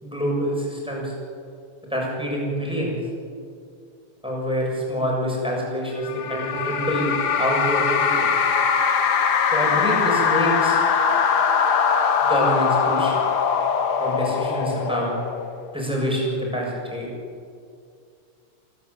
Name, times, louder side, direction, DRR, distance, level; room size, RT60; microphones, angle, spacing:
voice 1, 0.0-1.1 1.9-3.0 4.2-8.3 9.5-10.8 12.2-13.2 14.0-15.1 15.7-17.1, equal, ahead, -3 dB, 6.8 m, -26 dB
sound 1, 6.0-15.7, left 6 dB, 50° left, 1.2 m, -21 dB
29.5 x 12.0 x 9.8 m, 2.3 s
omnidirectional pair, 3.3 m